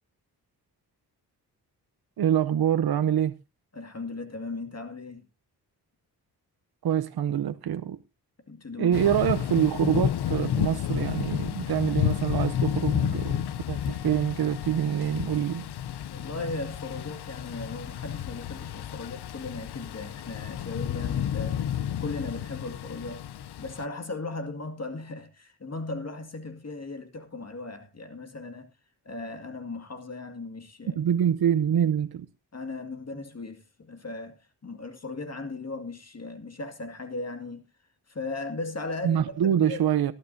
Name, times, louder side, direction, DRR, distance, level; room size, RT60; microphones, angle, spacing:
voice 1, 2.2-3.4 6.8-8.0 8.8-15.7 31.0-32.3 39.0-40.1, right 9 dB, 70° right, 0.8 m, -25 dB
voice 2, 3.7-5.2 8.5-9.0 15.9-23.2 23.6-28.7 29.0-31.0 32.5-34.3 34.6-37.6 38.1-39.8, left 3 dB, 40° left, 2.2 m, -37 dB
Thunder / Rain, 8.9-23.8, left 10 dB, 80° left, 0.7 m, -31 dB
19.0 x 12.0 x 2.7 m
cardioid pair, 75°, 39 cm